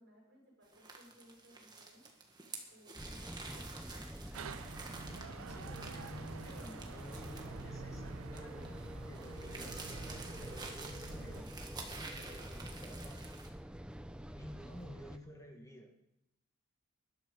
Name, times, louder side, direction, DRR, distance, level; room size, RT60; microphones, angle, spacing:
voice 1, 0.0-2.1 2.7-4.5 5.4-6.8 9.4-10.4, equal, 50° right, -3 dB, 7.1 m, -61 dB
sound 1, 0.7-13.5, right 3 dB, 20° right, 1.7 m, -50 dB
sound 2, 3.0-15.2, equal, 5° right, 0.5 m, -47 dB
sound 3, 4.3-11.4, right 4 dB, 85° right, 0.7 m, -49 dB
voice 2, 5.5-8.8 9.0-13.2 14.3-15.9, equal, 15° left, 2 dB, 1.9 m, -52 dB
20.0 x 12.0 x 5.5 m, 0.84 s
head